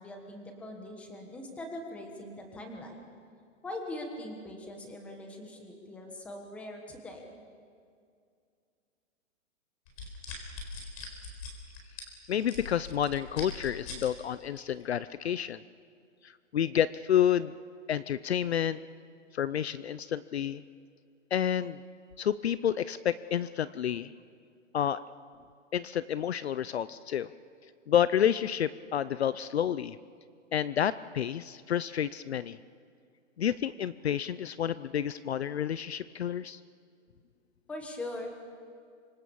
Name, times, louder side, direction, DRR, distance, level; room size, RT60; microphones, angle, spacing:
voice 1, 0.0-3.1 3.6-7.3 37.7-38.4, left 1 dB, 5° left, 2 dB, 1.3 m, -41 dB
sound 1, 9.9-14.1 14.6-14.8, left 3 dB, 30° left, 4.4 m, -41 dB
voice 2, 12.3-15.6 16.2-17.5 17.9-18.8 19.3-20.6 21.3-21.8 22.2-24.1 24.7-25.0 25.7-27.3 27.9-30.0 30.5-32.6 33.4-36.6, left 9 dB, 55° left, 16 dB, 0.7 m, -29 dB
29.0 x 25.5 x 7.1 m, 2.3 s
hypercardioid pair, 180°, 37 cm